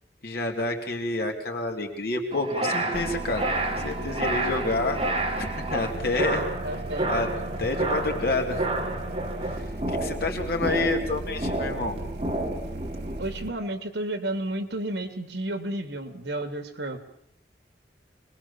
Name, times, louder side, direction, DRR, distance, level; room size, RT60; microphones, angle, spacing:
voice 1, 0.2-5.1 5.4-6.5 7.1-7.3 7.6-8.7 9.4-12.0, left 2 dB, 60° left, 2 dB, 3.6 m, -29 dB
sound 1, 2.3-13.2, right 2 dB, 30° right, 3.7 m, -30 dB
sound 2, 2.9-13.5, right 2 dB, 65° right, 2.1 m, -37 dB
voice 2, 6.6-7.1 13.2-17.0, right 1 dB, 85° right, 9 dB, 2.9 m, -32 dB
25.5 x 21.5 x 7.3 m, 0.68 s
head